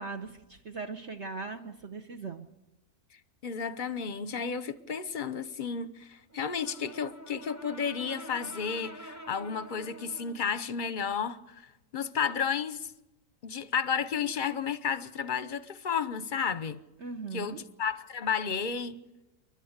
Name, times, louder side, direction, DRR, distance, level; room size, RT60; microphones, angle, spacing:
voice 1, 0.0-2.5 17.0-17.6, right 4 dB, 50° right, 1.3 m, -39 dB
voice 2, 3.4-12.9 13.4-16.8 17.3-19.0, left 6 dB, 40° left, 0.8 m, -32 dB
Brass instrument, 6.3-10.5, right 1 dB, 15° right, 1.0 m, -47 dB
29.0 x 12.0 x 8.1 m
omnidirectional pair, 1.6 m